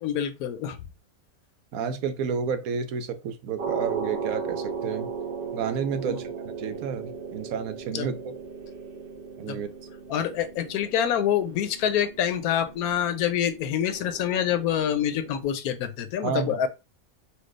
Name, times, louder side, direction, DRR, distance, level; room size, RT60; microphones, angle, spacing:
voice 1, 0.0-0.8 6.1-6.2 7.9-8.1 9.5-9.6 10.1-16.7, left 9 dB, 85° left, 1.1 m, -26 dB
voice 2, 1.7-5.1 5.5-8.3 9.4-9.7 16.2-16.6, right 6 dB, 80° right, 1.1 m, -31 dB
sound 1, 3.6-15.4, right 5 dB, 50° right, 0.7 m, -37 dB
4.5 x 2.3 x 3.2 m
omnidirectional pair, 1.5 m